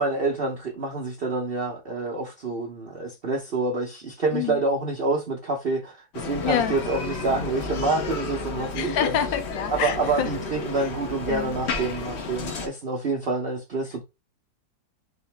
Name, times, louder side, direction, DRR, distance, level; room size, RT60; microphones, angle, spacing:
voice 1, 0.0-9.2 9.7-14.0, right 3 dB, 60° right, 0.6 m, -27 dB
Bicycle, 6.1-12.7, left 4 dB, 55° left, 0.8 m, -32 dB
voice 2, 6.4-6.8 8.7-10.3 11.3-11.6, left 9 dB, 80° left, 1.4 m, -27 dB
3.7 x 2.9 x 3.2 m
omnidirectional pair, 2.0 m